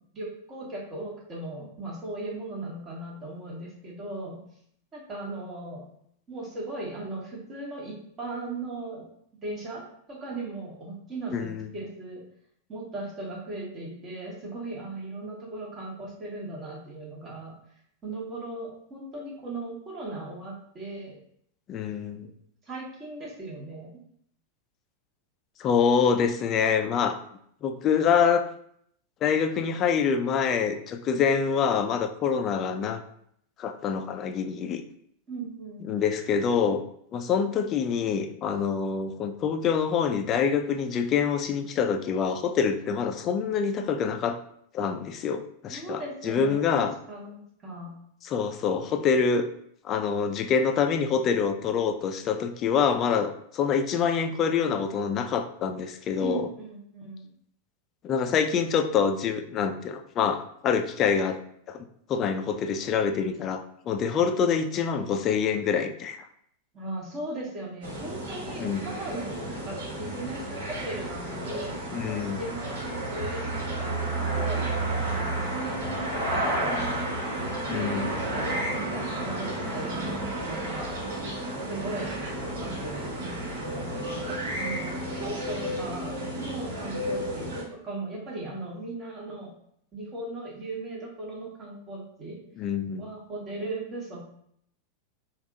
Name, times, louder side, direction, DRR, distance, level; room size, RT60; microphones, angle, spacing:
voice 1, 0.1-4.4 4.9-5.8 6.3-9.0 9.4-9.8 10.1-12.2 12.7-17.5 18.0-21.2 22.6-23.9 35.3-35.9 45.7-47.9 56.2-57.3 66.7-71.8 72.4-73.4 73.8-76.7 77.3-81.0 81.7-82.2 82.6-84.3 84.6-87.5 87.8-89.5 89.9-92.4 93.0-94.3, right 2 dB, 25° right, -3 dB, 1.3 m, -38 dB
voice 2, 11.3-11.7 21.7-22.3 25.6-27.2 27.6-28.5 29.2-33.0 33.6-34.8 35.9-36.8 37.1-44.4 44.7-46.9 48.3-49.5 49.8-56.5 58.0-61.4 61.7-66.3 68.6-68.8 71.9-72.4 77.7-78.1 92.6-93.0, left 6 dB, 30° left, 7 dB, 0.4 m, -26 dB
sound 1, 67.8-87.6, right 1 dB, 60° right, 1.5 m, -32 dB
3.4 x 2.4 x 3.8 m, 0.69 s
figure-of-eight pair, 90°, 0 cm